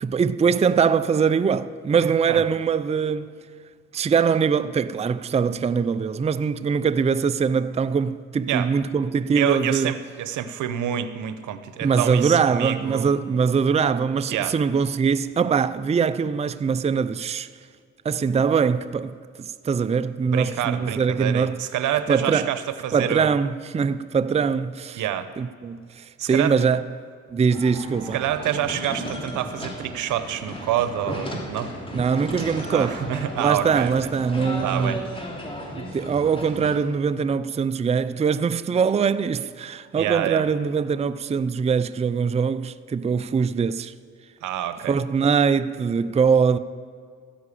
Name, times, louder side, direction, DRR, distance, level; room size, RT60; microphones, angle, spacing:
voice 1, 0.0-3.3 3.9-9.9 11.8-17.5 18.0-21.6 22.1-22.5 22.9-25.0 25.4-26.8 27.3-28.2 31.9-33.0 33.4-35.0 35.7-43.9 44.9-46.6, right 6 dB, 20° right, 0.4 m, -22 dB
voice 2, 9.3-13.1 14.3-14.5 20.3-23.3 24.9-25.3 26.2-26.5 28.1-31.7 32.7-33.9 34.6-35.0 40.0-40.4 44.4-45.0, right 11 dB, 80° right, 0.9 m, -27 dB
sound 1, 27.5-36.8, equal, 20° left, 3.4 m, -35 dB
13.5 x 10.0 x 8.4 m
cardioid pair, 90°, 30 cm